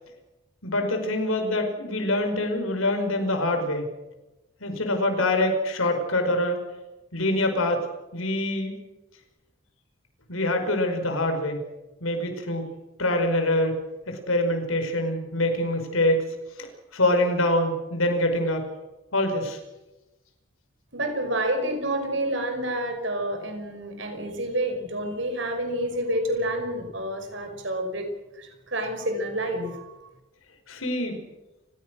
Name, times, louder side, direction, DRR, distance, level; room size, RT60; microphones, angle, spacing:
voice 1, 0.6-3.9 4.6-6.6 7.1-7.9 8.1-8.7 10.3-11.7 12.0-12.7 13.0-13.8 14.1-16.7 16.9-18.7 19.1-19.6 30.7-31.2, left 1 dB, 85° left, 5 dB, 5.3 m, -25 dB
voice 2, 20.9-28.1 28.3-29.9, right 1 dB, 60° right, 5 dB, 5.7 m, -29 dB
30.0 x 16.5 x 6.5 m, 1.0 s
head